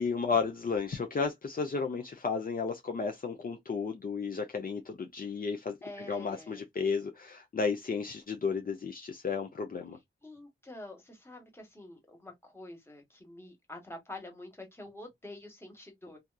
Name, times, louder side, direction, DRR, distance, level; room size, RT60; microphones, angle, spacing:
voice 1, 0.0-10.0, left 5 dB, 45° left, 0.5 m, -33 dB
voice 2, 5.8-6.6 10.2-16.2, left 1 dB, 10° left, 1.3 m, -47 dB
2.7 x 2.4 x 2.2 m
wide cardioid pair, 70°, 21 cm